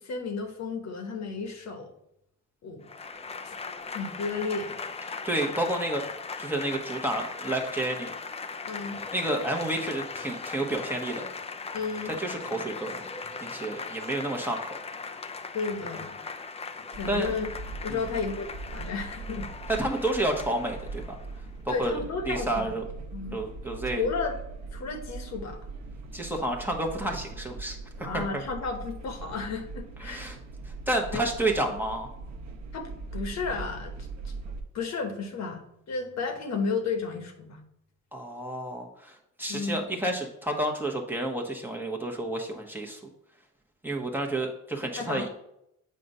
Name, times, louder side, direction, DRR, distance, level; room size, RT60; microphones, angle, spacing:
voice 1, 0.0-1.9 2.6-2.9 3.4-3.5 3.9-4.8 8.7-9.0 11.7-12.1 15.5-16.1 16.9-17.5 17.8-19.5 21.7-22.8 23.1-23.4 23.8-24.4 24.7-25.6 28.0-30.2 31.1-31.2 32.7-33.9 34.7-37.6 39.5-39.8 44.9-45.3, left 4 dB, 60° left, 4 dB, 1.1 m, -33 dB
Applause / Crowd, 2.8-21.4, left 4 dB, 20° left, 0.5 m, -39 dB
voice 2, 5.2-6.0 6.4-8.1 9.1-11.2 12.2-13.0 13.4-14.8 17.1-17.3 17.9-18.0 19.8-21.2 21.7-22.0 22.3-22.8 23.3-24.1 26.1-27.8 28.1-28.4 30.0-30.4 30.9-32.1 38.1-43.0 43.8-45.3, right 1 dB, 5° right, 0 dB, 1.0 m, -30 dB
sound 1, 16.9-34.6, right 3 dB, 65° right, 1.0 m, -40 dB
7.5 x 2.5 x 5.4 m, 0.79 s
cardioid pair, 90°, 30 cm